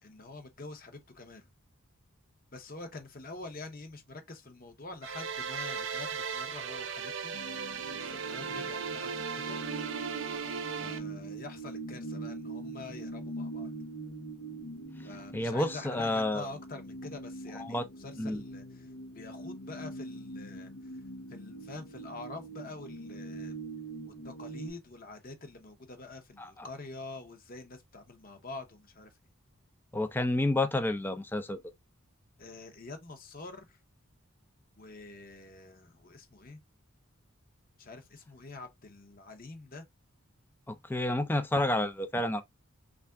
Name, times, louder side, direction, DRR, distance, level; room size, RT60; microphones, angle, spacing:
voice 1, 0.0-1.5 2.5-7.3 7.6-9.6 10.8-13.7 15.0-18.9 19.1-20.9 21.3-23.6 24.1-29.2 32.4-33.8 34.8-36.6 37.8-39.8, left 3 dB, 40° left, 0.8 m, -46 dB
sound 1, 5.0-11.0, right 6 dB, 60° right, 0.5 m, -37 dB
sound 2, 7.3-24.7, right 2 dB, 80° left, 0.8 m, -43 dB
voice 2, 15.3-16.5 17.6-17.8 18.2-18.4 26.4-26.7 29.9-31.6 40.7-42.4, left 1 dB, 10° left, 0.4 m, -30 dB
3.3 x 2.5 x 3.3 m
head